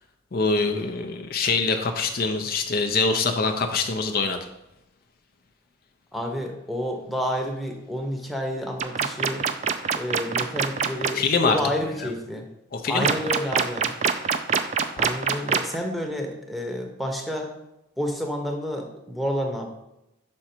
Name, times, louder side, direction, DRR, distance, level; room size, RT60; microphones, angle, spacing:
voice 1, 0.3-4.4 11.1-11.6 12.7-13.1, left 4 dB, 50° left, 6 dB, 0.5 m, -24 dB
voice 2, 6.1-9.4 9.9-12.5 12.9-13.9 15.0-17.5 18.0-19.7, equal, ahead, 2 dB, 0.8 m, -29 dB
sound 1, 8.8-11.1 13.0-15.8, right 6 dB, 35° right, 0.4 m, -23 dB
5.8 x 5.2 x 4.4 m, 0.89 s
head